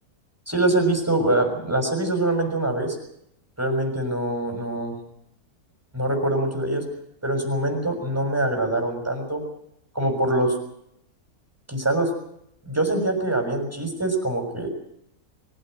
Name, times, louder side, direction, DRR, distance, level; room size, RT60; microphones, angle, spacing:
voice 1, 0.5-3.0 3.6-5.0 5.9-6.9 7.2-9.4 9.9-10.6 11.7-12.1 12.6-14.7, right 1 dB, 10° right, 3 dB, 6.2 m, -24 dB
24.0 x 16.5 x 7.8 m, 0.76 s
omnidirectional pair, 1.6 m